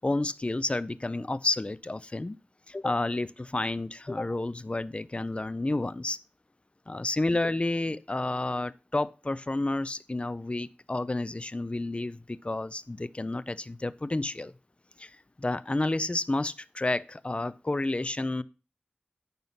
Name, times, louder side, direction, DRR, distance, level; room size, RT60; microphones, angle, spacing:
voice 1, 0.0-2.4 2.7-6.2 6.9-14.5 15.0-18.4, left 2 dB, 35° left, 17 dB, 0.5 m, -30 dB
9.4 x 5.6 x 5.7 m, 0.33 s
wide cardioid pair, 50°, 3 cm